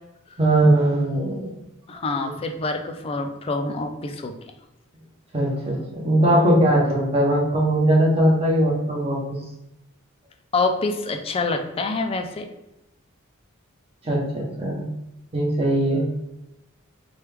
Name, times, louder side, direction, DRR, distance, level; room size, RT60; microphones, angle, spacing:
voice 1, 0.4-1.5 2.2-2.3 5.3-9.4 14.0-14.9 15.3-16.0, right 1 dB, 30° right, -3 dB, 0.8 m, -20 dB
voice 2, 1.9-4.3 10.5-12.5, left 3 dB, 25° left, 5 dB, 0.3 m, -26 dB
3.0 x 2.3 x 3.3 m, 0.93 s
head